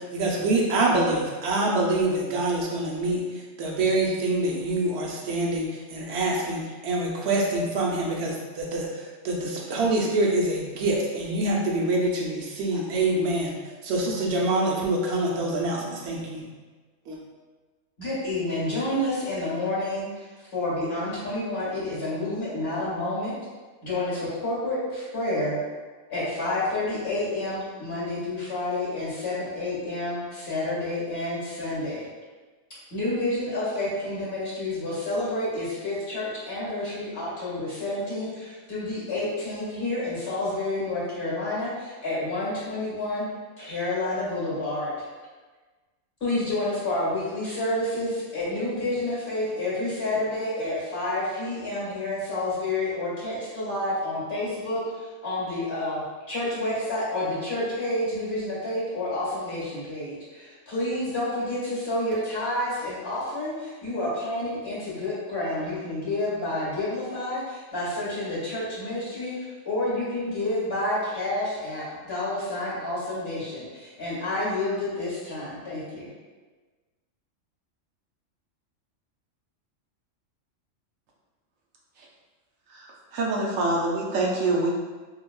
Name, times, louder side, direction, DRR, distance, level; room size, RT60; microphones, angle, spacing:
voice 1, 0.1-3.2 3.6-5.6 5.9-6.6 6.8-8.9 9.3-13.5 13.9-15.8 16.1-16.4, right 2 dB, 60° right, -2 dB, 0.9 m, -25 dB
voice 2, 18.0-23.3 23.8-25.6 26.1-32.1 32.9-43.3 43.6-44.9 46.2-76.1, left 1 dB, 50° left, -10 dB, 1.9 m, -29 dB
voice 3, 82.7-84.7, right 2 dB, 85° right, -3 dB, 1.1 m, -25 dB
5.6 x 2.4 x 2.3 m, 1.3 s
omnidirectional pair, 1.4 m